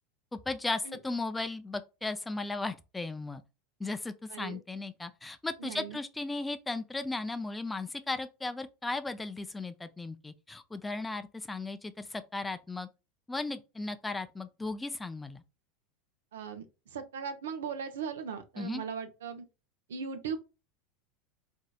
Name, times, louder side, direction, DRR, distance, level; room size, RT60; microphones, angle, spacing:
voice 1, 0.3-3.4 3.8-12.9 13.3-15.4 18.6-18.8, left 3 dB, 10° left, 0.4 m, -36 dB
voice 2, 4.3-4.6 5.6-6.0 16.3-19.4 19.9-20.4, right 6 dB, 80° right, 0.6 m, -38 dB
3.9 x 2.7 x 2.3 m
hypercardioid pair, 90°, 0 cm